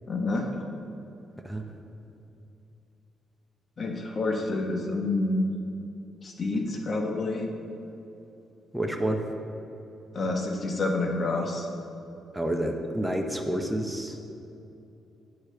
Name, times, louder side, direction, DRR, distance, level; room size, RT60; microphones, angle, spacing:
voice 1, 0.1-0.5 3.8-5.5 6.2-7.5 10.1-11.7, left 2 dB, 40° left, 2 dB, 0.9 m, -28 dB
voice 2, 8.7-9.2 12.3-14.2, right 1 dB, 5° right, 3 dB, 0.6 m, -29 dB
8.4 x 6.3 x 3.3 m, 2.8 s
cardioid pair, 90°, 0 cm